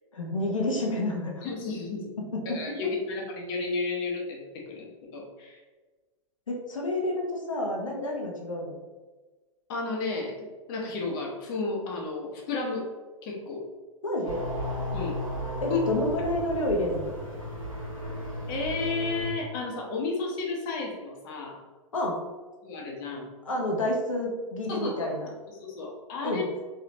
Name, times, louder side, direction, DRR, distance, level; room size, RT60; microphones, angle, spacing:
voice 1, 0.1-1.4 2.2-2.9 6.5-8.8 14.0-14.5 15.6-17.1 21.9-22.2 23.4-25.3 26.2-26.5, left 1 dB, 70° left, 0 dB, 0.9 m, -29 dB
voice 2, 1.4-2.1 2.5-5.6 9.7-12.9 13.2-13.7 14.9-15.2 15.7-15.8 18.5-21.6 22.6-23.3 24.7-25.1 25.6-26.4, left 3 dB, 40° left, -1 dB, 0.9 m, -32 dB
sound 1, 14.2-19.3, left 1 dB, 90° right, 1.5 m, -34 dB
3.8 x 3.3 x 2.9 m, 1.3 s
figure-of-eight pair, 100°, 17 cm